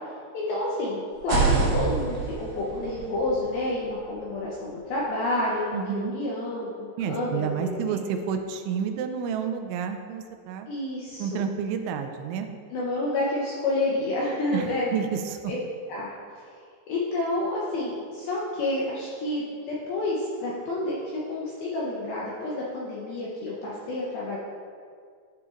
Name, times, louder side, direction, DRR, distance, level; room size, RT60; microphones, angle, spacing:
voice 1, 0.3-8.0 10.7-11.4 12.7-14.9 15.5-15.6 15.9-16.1 16.9-24.4, left 2 dB, 80° left, -5 dB, 2.2 m, -29 dB
sound 1, 1.1-5.0, right 4 dB, 65° right, 3.4 m, -29 dB
voice 2, 5.7-6.1 7.0-10.7 11.2-12.5 14.5-14.7 14.9-15.4, right 7 dB, 85° right, 6 dB, 2.9 m, -30 dB
12.0 x 6.8 x 2.5 m, 2.1 s
omnidirectional pair, 5.3 m